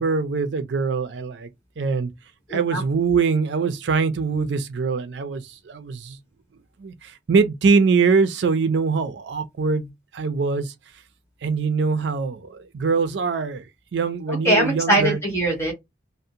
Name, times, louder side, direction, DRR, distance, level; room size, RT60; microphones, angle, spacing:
voice 1, 0.0-1.5 1.8-2.1 2.5-6.2 6.8-10.7 11.4-13.7 13.9-15.2, right 4 dB, 80° right, 0.4 m, -23 dB
voice 2, 14.3-15.7, right 1 dB, 15° left, 1.1 m, -21 dB
2.6 x 2.1 x 2.6 m
head